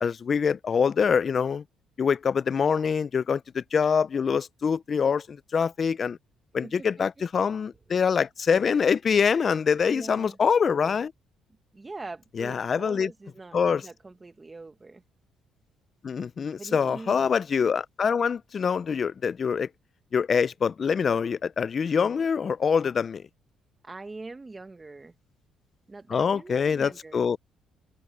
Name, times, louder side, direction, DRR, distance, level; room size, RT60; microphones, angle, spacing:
voice 1, 0.0-1.6 2.0-6.2 6.5-11.1 12.4-13.1 13.5-13.8 16.0-19.7 20.1-23.3 26.1-27.4, left 6 dB, 35° left, 0.4 m, -25 dB
voice 2, 9.8-10.4 11.7-15.0 16.6-17.3 23.8-25.1 25.9-27.2, right 3 dB, 20° right, 1.2 m, -42 dB
open air
cardioid pair, 130°, 0 cm